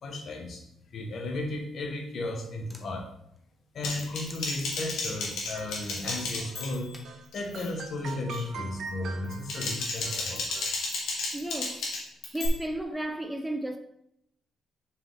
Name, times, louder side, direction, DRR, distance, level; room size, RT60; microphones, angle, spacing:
voice 1, 0.0-0.7 0.9-3.1 3.7-6.9 7.3-10.5, left 2 dB, 55° left, 1.2 m, -34 dB
sound 1, 2.7-2.9 3.4-3.5 4.0-6.3 6.6-7.1 7.8-8.1, left 1 dB, 10° left, 1.0 m, -48 dB
Typing, 3.8-7.0 7.3-7.7 8.1-8.4 9.2-12.5, left 3 dB, 85° left, 1.7 m, -33 dB
sound 2, 5.5-6.7 7.0-7.2 7.5-10.8, right 5 dB, 65° right, 0.7 m, -43 dB
voice 2, 11.3-11.9 12.3-13.8, right 1 dB, 10° right, 0.4 m, -33 dB
6.6 x 4.8 x 3.5 m
cardioid pair, 125°, 0 cm